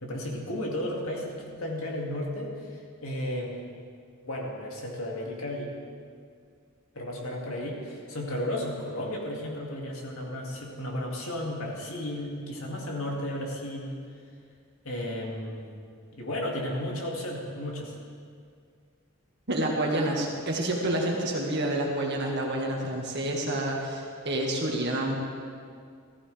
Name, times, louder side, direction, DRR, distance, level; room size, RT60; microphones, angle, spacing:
voice 1, 0.0-3.6 4.2-5.8 6.9-14.0 14.8-15.8 16.1-18.0, left 1 dB, 75° left, -2 dB, 2.4 m, -34 dB
voice 2, 19.5-25.2, right 1 dB, 50° right, -1 dB, 1.9 m, -28 dB
15.0 x 15.0 x 3.5 m, 2.2 s
head